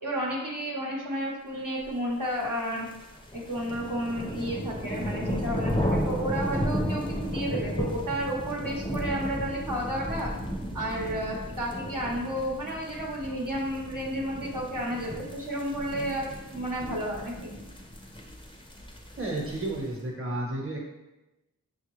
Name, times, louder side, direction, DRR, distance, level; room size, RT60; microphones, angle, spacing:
voice 1, 0.0-2.9 3.3-10.3 10.7-17.5, equal, 65° right, -4 dB, 0.9 m, -32 dB
sound 1, 2.4-19.9, equal, 15° left, 0.5 m, -34 dB
voice 2, 19.2-20.8, right 1 dB, 40° right, -2 dB, 0.9 m, -32 dB
5.9 x 2.3 x 3.1 m, 1.0 s
wide cardioid pair, 45°, 35 cm